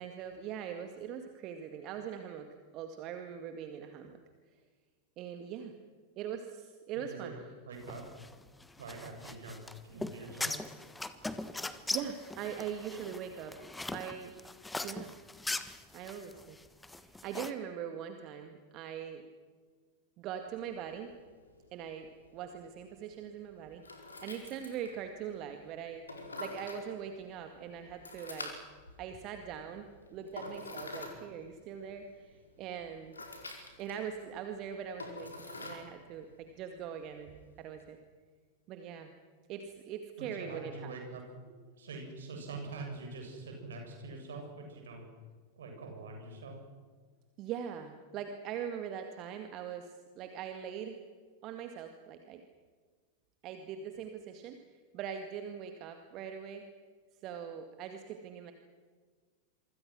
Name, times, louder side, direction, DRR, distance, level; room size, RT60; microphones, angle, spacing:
voice 1, 0.0-4.2 5.2-5.7 6.2-7.3 11.9-13.6 13.9-14.3 14.8-15.2 15.9-16.6 17.0-19.2 20.2-21.1 21.7-23.8 24.2-26.0 26.4-28.6 29.0-33.2 33.8-38.0 38.7-39.1 39.5-40.9 47.4-51.0 51.4-52.4 53.4-56.6 57.2-58.5, right 8 dB, 40° right, 6 dB, 2.1 m, -42 dB
voice 2, 6.9-7.4 7.6-8.0 8.8-10.6 40.2-45.1 45.6-46.6, right 3 dB, 65° right, 2 dB, 7.8 m, -44 dB
sound 1, 7.8-17.5, left 2 dB, 5° left, 1.5 m, -40 dB
sound 2, 20.3-37.8, left 2 dB, 75° left, 4.9 m, -49 dB
27.0 x 25.0 x 6.3 m, 1.5 s
figure-of-eight pair, 90°, 0 cm